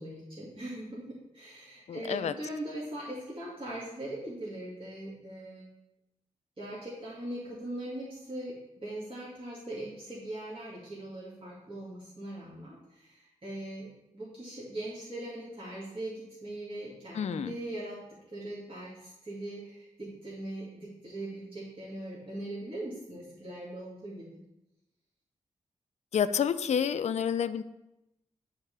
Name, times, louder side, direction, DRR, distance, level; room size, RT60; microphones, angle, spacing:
voice 1, 0.0-5.7 6.6-13.9 14.1-18.0 18.3-24.3, right 1 dB, 40° right, -8 dB, 2.1 m, -40 dB
voice 2, 1.9-2.3 17.1-17.5 26.1-27.6, left 8 dB, 55° left, 12 dB, 0.4 m, -29 dB
9.9 x 3.6 x 3.3 m, 0.89 s
cardioid pair, 55°, 14 cm